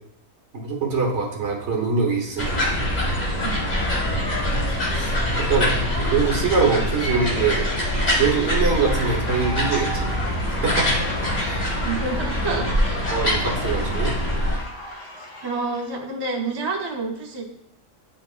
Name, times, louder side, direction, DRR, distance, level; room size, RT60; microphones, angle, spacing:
voice 1, 0.5-2.6 4.9-5.7 6.1-7.6 8.2-10.1 10.6-11.1 11.4-11.9 12.5-12.6 13.1-14.2, right 5 dB, 50° right, 0 dB, 1.4 m, -24 dB
Seagulls on Southbank, 2.4-14.6, left 1 dB, 30° left, 1.6 m, -24 dB
sound 1, 8.7-15.9, equal, 55° left, 2.1 m, -36 dB
voice 2, 11.8-13.0 15.0-15.1 15.4-17.5, right 3 dB, 30° right, 2 dB, 0.4 m, -28 dB
9.5 x 4.2 x 2.4 m, 0.74 s
omnidirectional pair, 1.5 m